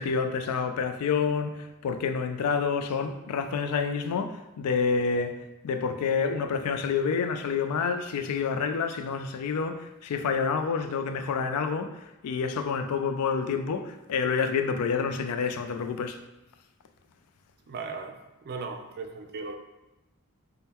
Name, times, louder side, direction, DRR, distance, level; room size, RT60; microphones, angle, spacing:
voice 1, 0.0-5.4 5.6-12.0 12.2-16.2, left 5 dB, 90° left, 0.4 m, -28 dB
voice 2, 17.7-19.6, right 4 dB, 45° right, 0.4 m, -37 dB
4.2 x 2.1 x 3.5 m
head